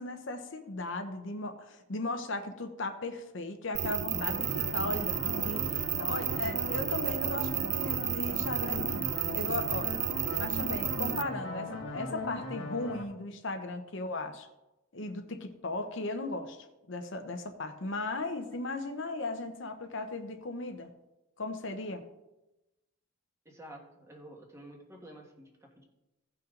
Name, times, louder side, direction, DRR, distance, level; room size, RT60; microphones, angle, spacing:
voice 1, 0.0-9.1 9.3-9.9 10.4-14.5 14.9-20.9 21.4-22.0, left 2 dB, 65° left, 6 dB, 0.9 m, -37 dB
sound 1, 3.7-11.2, right 12 dB, 55° right, 0.4 m, -32 dB
sound 2, 4.1-13.0, left 1 dB, 90° left, 1.5 m, -39 dB
voice 2, 23.4-25.8, right 1 dB, 15° right, 0 dB, 1.5 m, -50 dB
16.0 x 5.9 x 3.8 m, 0.98 s
head